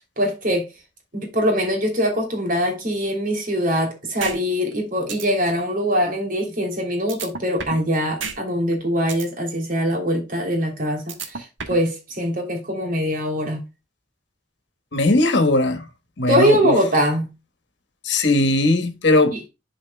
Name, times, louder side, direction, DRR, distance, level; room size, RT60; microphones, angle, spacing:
voice 1, 0.2-0.7 1.1-13.6 16.3-17.3 19.3-19.4, equal, 45° right, 3.0 m, -22 dB
sound 1, 4.2-4.4 4.7-4.8 5.1-5.2 7.1-7.9 8.2-8.4 8.7-9.3 11.1-11.9, right 5 dB, 75° right, 1.4 m, -30 dB
voice 2, 14.9-15.8 16.2-16.7 18.0-19.5, left 2 dB, 65° left, 1.3 m, -19 dB
11.0 x 5.0 x 2.2 m
head